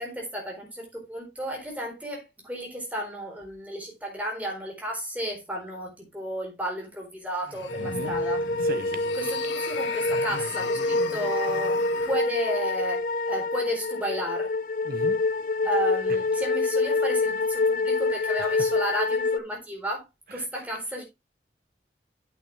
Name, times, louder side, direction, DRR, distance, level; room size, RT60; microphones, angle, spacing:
voice 1, 0.0-8.4 9.1-14.5 15.6-20.0 20.3-21.0, right 1 dB, 10° right, 4.2 m, -33 dB
sound 1, 7.4-12.2, left 4 dB, 80° left, 1.8 m, -38 dB
sound 2, 7.7-19.4, left 3 dB, 45° left, 0.5 m, -26 dB
voice 2, 7.8-8.1 8.6-9.1 14.8-15.2 18.4-18.6 20.3-20.5, right 2 dB, 50° right, 1.0 m, -37 dB
8.9 x 8.3 x 3.3 m
head